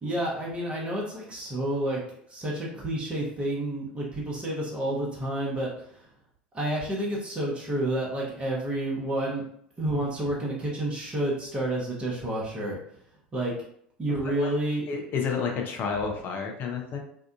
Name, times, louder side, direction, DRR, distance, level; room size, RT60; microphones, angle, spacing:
voice 1, 0.0-2.0 2.3-6.1 6.5-9.4 9.8-12.8 13.3-13.5 14.0-14.9, right 1 dB, 20° right, -4 dB, 0.9 m, -29 dB
voice 2, 14.9-17.0, left 5 dB, 45° left, 2 dB, 0.5 m, -30 dB
2.7 x 2.4 x 2.3 m, 0.68 s
figure-of-eight pair, 75°, 5 cm